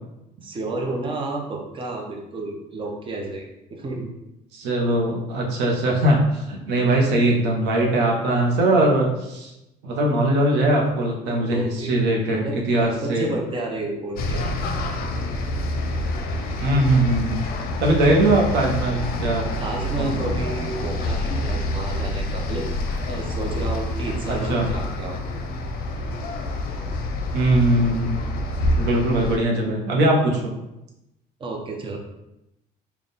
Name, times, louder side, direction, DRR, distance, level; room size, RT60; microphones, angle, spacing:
voice 1, 0.4-4.1 11.5-12.0 12.3-14.7 18.1-18.3 19.6-22.7 23.0-25.2 31.4-32.0, right 2 dB, 30° right, 0 dB, 0.7 m, -31 dB
voice 2, 4.5-9.5 9.8-13.3 16.6-17.4 17.8-19.5 20.0-20.1 24.3-24.7 27.3-28.1 28.8-30.5, right 1 dB, 90° right, 0 dB, 0.8 m, -21 dB
sound 1, 14.2-29.4, left 1 dB, 60° left, 0.5 m, -27 dB
3.5 x 2.2 x 4.0 m, 0.91 s
cardioid pair, 110°, 17 cm